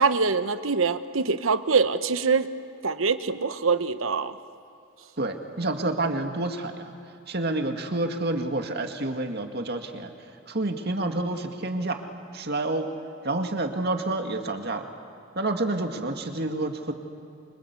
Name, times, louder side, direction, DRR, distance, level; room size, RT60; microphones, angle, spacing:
voice 1, 0.0-2.5 2.8-4.4, right 4 dB, 80° right, 12 dB, 1.0 m, -24 dB
voice 2, 5.2-6.9 7.3-10.1 10.5-12.0 12.3-12.9 13.2-14.9 15.4-16.9, right 2 dB, 50° right, 5 dB, 2.2 m, -28 dB
28.0 x 25.5 x 8.3 m, 2.7 s
head